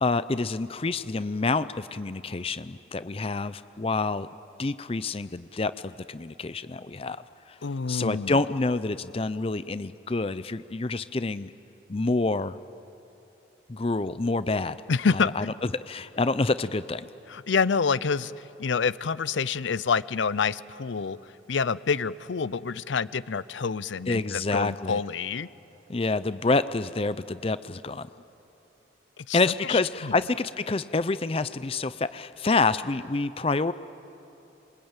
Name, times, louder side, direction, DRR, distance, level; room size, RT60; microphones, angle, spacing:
voice 1, 0.0-4.3 4.6-7.6 7.9-11.5 11.9-12.6 13.7-14.8 15.1-17.1 24.1-25.0 25.9-28.1 29.3-33.7, left 3 dB, 30° left, 14 dB, 0.5 m, -27 dB
voice 2, 7.6-8.4 14.9-15.5 17.3-25.5 29.2-30.2, left 5 dB, 75° left, 18 dB, 0.6 m, -28 dB
27.0 x 24.0 x 8.9 m, 2.9 s
head